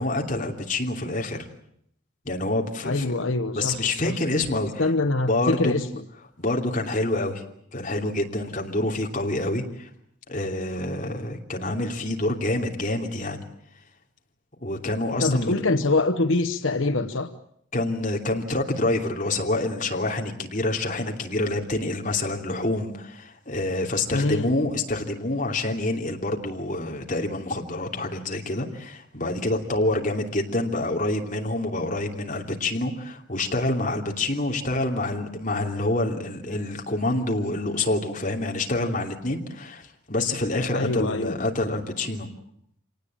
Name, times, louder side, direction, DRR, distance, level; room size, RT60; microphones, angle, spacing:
voice 1, 0.0-1.4 2.2-3.1 3.6-4.9 5.3-5.7 6.4-7.4 7.7-9.9 10.3-13.4 14.6-15.6 17.7-42.3, left 2 dB, 40° left, 2 dB, 2.9 m, -27 dB
voice 2, 2.8-4.1 4.8-6.0 15.2-17.3 24.1-24.6 40.7-41.3, left 2 dB, 75° left, 8 dB, 1.1 m, -24 dB
26.0 x 19.0 x 8.8 m, 0.70 s
head